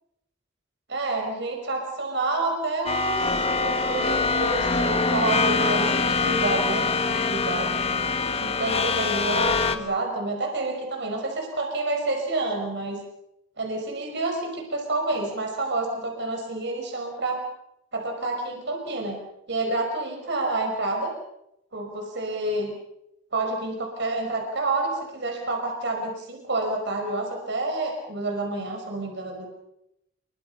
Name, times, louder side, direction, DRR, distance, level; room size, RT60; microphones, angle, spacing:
voice 1, 0.9-7.8 8.3-13.0 13.6-17.4 17.9-19.2 19.5-21.1 21.7-22.7 23.3-29.5, right 2 dB, 60° right, 3 dB, 5.5 m, -29 dB
sound 1, 2.9-9.8, left 4 dB, 30° left, 1.7 m, -24 dB
28.5 x 24.0 x 5.7 m, 0.81 s
head